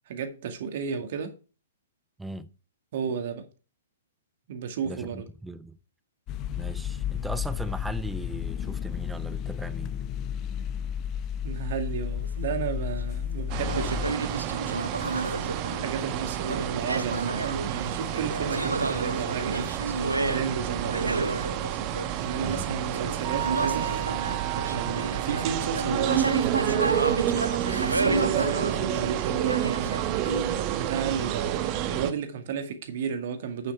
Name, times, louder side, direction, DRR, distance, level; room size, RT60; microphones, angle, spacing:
voice 1, 0.1-1.4 2.9-3.5 4.5-5.3 11.4-14.5 15.8-19.7 20.3-21.5 22.2-23.9 24.7-27.0 27.8-30.1 30.7-33.7, right 7 dB, 55° right, 2.0 m, -33 dB
voice 2, 2.2-2.5 4.8-5.8 6.5-10.0 22.4-22.7, right 2 dB, 5° right, 0.7 m, -38 dB
sound 1, 6.3-14.1, left 9 dB, 30° left, 0.8 m, -32 dB
sound 2, 12.2-13.1 13.7-16.1 16.4-30.8, right 2 dB, 90° right, 0.7 m, -31 dB
sound 3, 13.5-32.1, right 11 dB, 35° right, 1.1 m, -29 dB
8.8 x 7.5 x 4.5 m
figure-of-eight pair, 115°, 0 cm